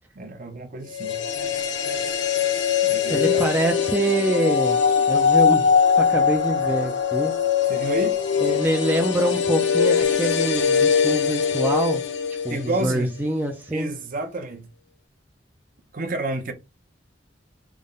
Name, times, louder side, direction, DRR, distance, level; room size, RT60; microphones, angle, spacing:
voice 1, 0.1-1.2 2.8-3.5 7.7-8.2 12.5-13.1 13.7-14.7 15.9-16.5, right 2 dB, 50° right, 0.8 m, -30 dB
sound 1, 0.9-13.0 13.3-13.4, left 6 dB, 70° left, 0.7 m, -22 dB
voice 2, 3.1-4.8 5.1-7.3 8.4-12.0 12.4-13.9, right 1 dB, 10° right, 0.4 m, -25 dB
3.5 x 2.1 x 3.8 m
head